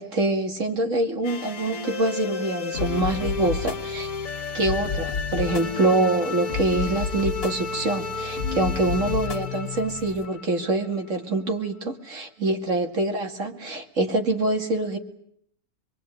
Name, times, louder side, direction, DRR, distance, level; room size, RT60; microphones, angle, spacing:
voice 1, 0.0-4.1 4.5-15.0, right 2 dB, 55° right, 3 dB, 2.9 m, -25 dB
sound 1, 1.2-11.1, left 4 dB, 65° left, 2.0 m, -34 dB
sound 2, 2.7-10.3, left 5 dB, 40° left, 1.6 m, -32 dB
25.0 x 23.0 x 9.3 m, 0.69 s
omnidirectional pair, 1.6 m